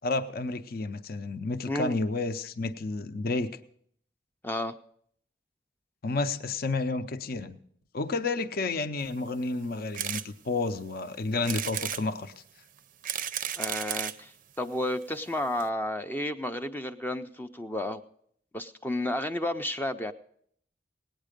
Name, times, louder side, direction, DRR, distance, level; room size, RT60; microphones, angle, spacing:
voice 1, 0.0-3.5 6.0-7.6 7.9-12.3, left 3 dB, 55° left, 11 dB, 0.6 m, -31 dB
voice 2, 1.7-2.0 4.4-4.7 13.6-14.3 14.6-18.0 18.5-20.1, left 1 dB, 10° left, 8 dB, 0.4 m, -32 dB
sound 1, 9.9-10.3 10.7-10.8 11.4-12.0 12.8-14.2 15.0-15.1 15.3-15.4 15.6-15.7, right 10 dB, 45° right, 0.5 m, -33 dB
18.5 x 9.1 x 5.1 m, 0.65 s
head